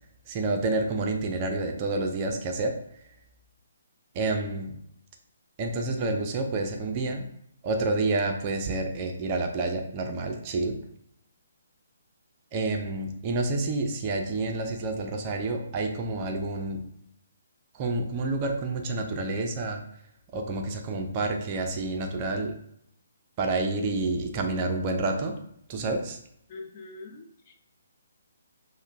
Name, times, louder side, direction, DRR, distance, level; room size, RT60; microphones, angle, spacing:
voice 1, 0.3-2.8 4.1-4.8 5.6-7.3 7.6-10.8 12.5-16.9 17.7-19.8 20.3-22.5 23.4-25.4 25.7-26.2, right 2 dB, 25° right, 3 dB, 0.5 m, -29 dB
voice 2, 26.5-27.5, left 3 dB, 30° left, 3 dB, 0.4 m, -43 dB
5.1 x 2.1 x 2.5 m, 0.73 s
figure-of-eight pair, 135°, 0 cm